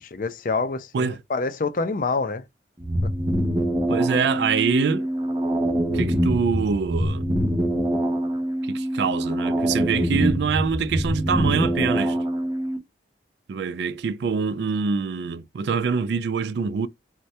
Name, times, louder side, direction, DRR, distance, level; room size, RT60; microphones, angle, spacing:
voice 1, 0.0-2.4, left 3 dB, 45° left, 0.4 m, -26 dB
sound 1, 2.8-12.8, equal, 20° right, 0.5 m, -24 dB
voice 2, 3.9-5.1 5.9-7.3 8.6-12.2 13.5-16.9, right 5 dB, 70° right, 0.3 m, -25 dB
3.1 x 2.2 x 2.7 m
head